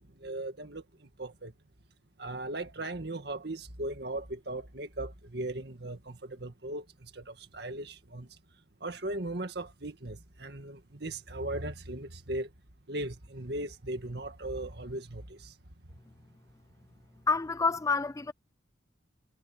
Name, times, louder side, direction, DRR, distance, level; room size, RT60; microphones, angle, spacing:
voice 1, 0.2-0.8 1.2-1.5 2.2-8.3 8.8-12.5 12.9-15.5, right 1 dB, 55° right, 2.1 m, -38 dB
voice 2, 17.3-18.3, left 4 dB, 15° left, 0.4 m, -28 dB
head